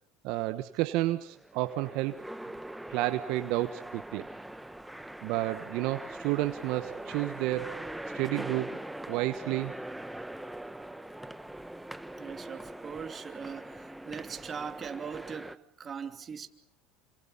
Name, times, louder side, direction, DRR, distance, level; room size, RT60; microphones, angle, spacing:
voice 1, 0.2-2.2 2.9-4.3 5.2-8.8 9.1-9.7, right 16 dB, 65° right, 1.2 m, -31 dB
sound 1, 1.2-15.6, right 1 dB, 5° right, 1.1 m, -42 dB
voice 2, 12.2-16.5, right 6 dB, 35° right, 2.8 m, -40 dB
29.0 x 26.0 x 5.7 m
supercardioid pair, 90°, 0 cm